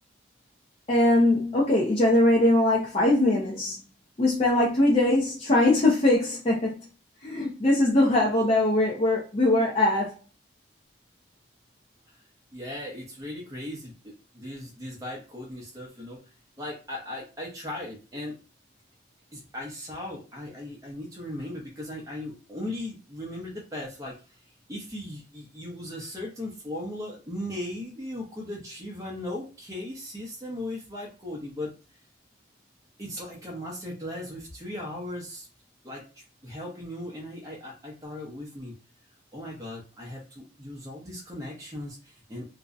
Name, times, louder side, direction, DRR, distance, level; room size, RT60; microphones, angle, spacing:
voice 1, 0.9-3.8 4.2-6.8 7.2-10.1, left 1 dB, 30° left, 0.5 m, -21 dB
voice 2, 12.5-16.2 16.6-18.4 19.3-24.2 24.7-31.7 33.0-35.5 35.8-38.7 39.3-42.5, left 1 dB, 15° right, 0.6 m, -37 dB
2.6 x 2.0 x 2.4 m
head